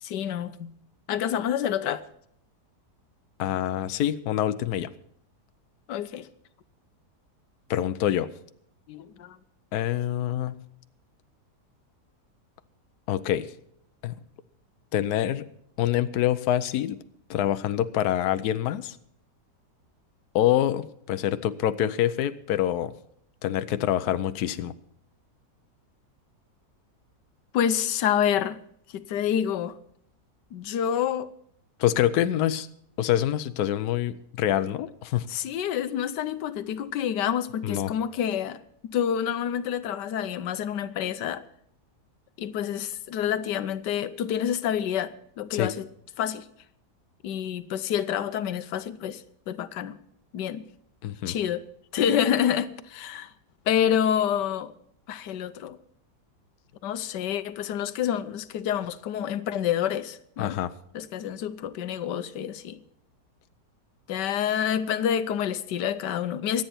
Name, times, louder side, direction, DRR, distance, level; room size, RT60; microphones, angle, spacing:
voice 1, 0.0-0.8 1.1-2.0 5.9-6.3 8.9-9.4 27.5-28.6 28.9-29.7 30.5-31.3 35.3-41.4 42.4-45.9 46.2-46.5 47.2-50.0 50.3-50.7 51.3-51.6 51.9-53.3 53.7-54.7 55.1-55.8 56.8-60.6 60.9-62.8 64.1-66.6, left 9 dB, 85° left, 1.4 m, -28 dB
voice 2, 3.4-4.9 7.7-8.3 9.7-10.6 13.1-13.5 14.0-14.1 14.9-15.5 15.8-17.0 17.3-19.0 20.3-22.9 23.4-24.7 31.8-32.7 33.0-35.3 37.6-37.9 45.5-45.7 51.0-51.3 60.4-60.7, left 11 dB, 70° left, 1.2 m, -26 dB
24.5 x 9.0 x 4.3 m
omnidirectional pair, 1.8 m